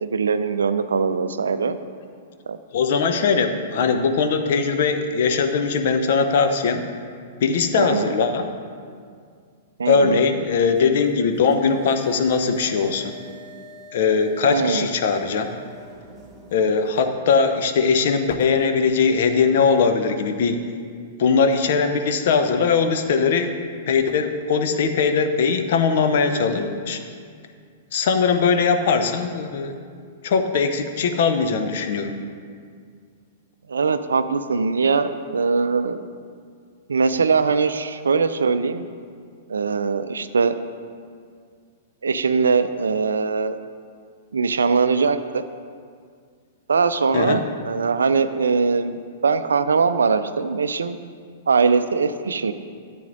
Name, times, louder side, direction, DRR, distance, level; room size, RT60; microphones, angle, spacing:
voice 1, 0.0-1.8 2.5-2.6 7.8-8.1 9.8-10.2 14.5-14.9 33.7-36.0 36.9-38.8 39.5-40.5 42.0-43.6 44.3-45.4 46.7-51.0 51.5-52.5, right 5 dB, 75° right, 11 dB, 0.4 m, -21 dB
voice 2, 2.7-6.8 7.4-8.5 9.9-13.1 13.9-15.5 16.5-20.7 21.2-23.5 23.9-27.0 27.9-29.7 30.2-32.1 47.1-47.4, left 5 dB, 55° left, 7 dB, 0.7 m, -20 dB
sound 1, 10.7-17.1, left 1 dB, 10° right, 2.5 m, -46 dB
13.5 x 8.4 x 2.6 m, 2.1 s
figure-of-eight pair, 105°, 0 cm